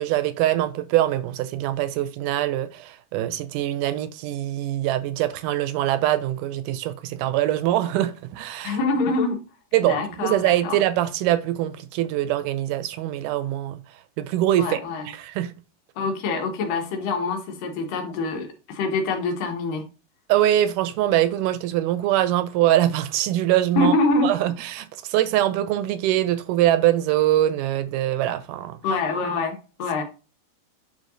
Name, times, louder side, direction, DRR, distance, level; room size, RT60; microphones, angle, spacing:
voice 1, 0.0-8.8 9.7-13.8 14.2-14.8 15.1-15.5 20.3-23.9 24.2-28.8, right 13 dB, 80° right, 2.0 m, -23 dB
voice 2, 8.6-9.4 9.8-10.8 14.6-15.1 16.0-19.8 23.8-24.3 28.8-30.0, left 3 dB, 85° left, 2.9 m, -25 dB
11.5 x 3.8 x 2.6 m
omnidirectional pair, 3.8 m